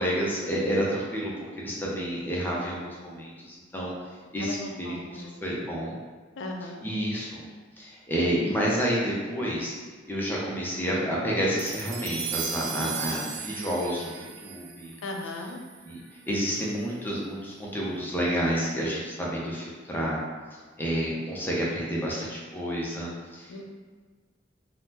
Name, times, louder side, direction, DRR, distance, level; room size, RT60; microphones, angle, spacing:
voice 1, 0.0-3.9 4.3-6.0 6.8-7.4 7.8-9.8 10.1-14.9 15.8-16.0 16.3-20.2 20.8-23.6, equal, 10° left, -5 dB, 0.5 m, -29 dB
voice 2, 4.4-5.3 6.3-6.8 15.0-15.6 23.5-23.6, left 2 dB, 80° left, 2 dB, 0.4 m, -37 dB
sound 1, 11.6-16.1, right 6 dB, 80° right, 0.4 m, -36 dB
3.5 x 2.0 x 2.7 m, 1.4 s
head